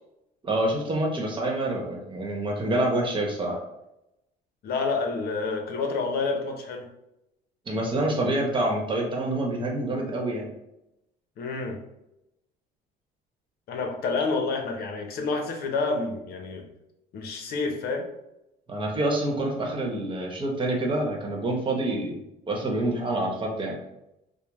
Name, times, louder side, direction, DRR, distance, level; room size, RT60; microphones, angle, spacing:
voice 1, 0.4-3.6 7.7-10.5 18.7-22.2 22.5-23.8, right 1 dB, 30° right, 0 dB, 1.0 m, -27 dB
voice 2, 4.6-6.9 11.4-11.8 13.7-16.7 17.1-18.1, left 4 dB, 65° left, 3 dB, 0.8 m, -28 dB
5.0 x 2.1 x 3.0 m, 0.88 s
cardioid pair, 110°, 17 cm